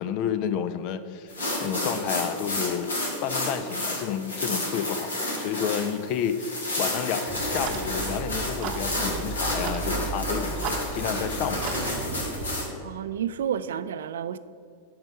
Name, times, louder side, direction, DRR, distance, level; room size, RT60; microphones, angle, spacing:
voice 1, 0.0-1.3 1.6-2.9 3.2-11.9, left 8 dB, 45° left, 12 dB, 0.4 m, -30 dB
sound 1, 1.3-12.6, left 1 dB, 75° left, 2.0 m, -31 dB
Clock, 7.3-12.6, right 5 dB, 40° right, 0.8 m, -34 dB
voice 2, 12.8-14.4, right 9 dB, 60° right, 14 dB, 0.4 m, -30 dB
8.7 x 5.2 x 6.7 m, 2.5 s
figure-of-eight pair, 90°, 0 cm